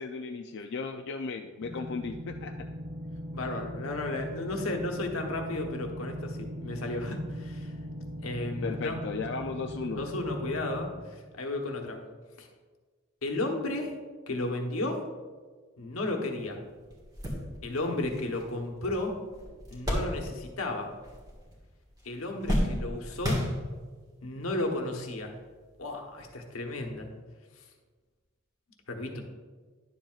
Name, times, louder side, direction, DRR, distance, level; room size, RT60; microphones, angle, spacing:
voice 1, 0.0-2.5 8.6-10.1 29.0-29.2, left 4 dB, 55° left, 4 dB, 0.4 m, -35 dB
sound 1, 1.6-10.9, equal, 75° right, 2.4 m, -40 dB
voice 2, 3.3-7.7 8.2-9.0 10.0-12.0 12.4-12.5 13.2-13.9 14.3-15.1 15.8-16.6 17.6-19.2 19.7-20.9 22.0-23.4 24.2-25.4 25.8-27.1 27.6-27.7 28.9-29.2, left 2 dB, 90° left, 2 dB, 1.1 m, -33 dB
sound 2, 16.4-16.5 16.9-20.7 20.9-21.7 22.0-24.0 24.8-24.9 26.2-26.3, equal, 20° right, 1.7 m, -33 dB
10.5 x 7.5 x 2.4 m, 1.4 s
head